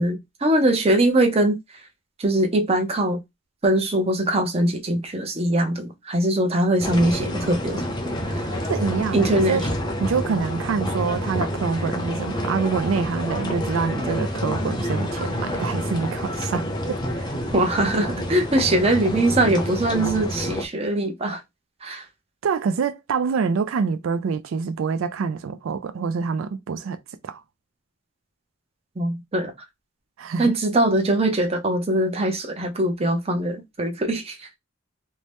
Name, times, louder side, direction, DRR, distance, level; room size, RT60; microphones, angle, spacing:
voice 1, 0.0-1.6 2.2-3.2 3.6-7.8 8.3-8.5 9.1-9.6 17.5-21.4 21.8-22.1 29.0-29.5 30.4-34.4, right 1 dB, 30° right, 0.6 m, -22 dB
sound 1, 6.8-20.6, equal, 20° left, 0.6 m, -28 dB
voice 2, 8.7-9.7 10.0-17.3 22.4-27.4 30.2-30.5, right 5 dB, 90° right, 0.4 m, -26 dB
2.7 x 2.1 x 3.3 m
head